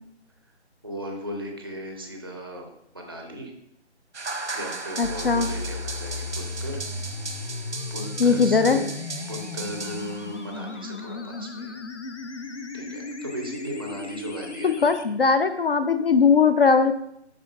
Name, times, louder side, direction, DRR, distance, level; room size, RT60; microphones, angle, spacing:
voice 1, 0.8-3.5 4.5-6.8 7.8-8.9 9.2-11.8 12.7-14.9, equal, 20° right, 1 dB, 0.5 m, -37 dB
sound 1, 4.1-10.5, right 3 dB, 90° right, 1.1 m, -36 dB
sound 2, 5.0-15.0, left 3 dB, 85° left, 0.8 m, -35 dB
voice 2, 5.0-5.5 8.2-8.8 14.6-16.9, left 5 dB, 55° left, 10 dB, 0.4 m, -19 dB
11.0 x 3.7 x 2.4 m, 0.75 s
figure-of-eight pair, 155°, 34 cm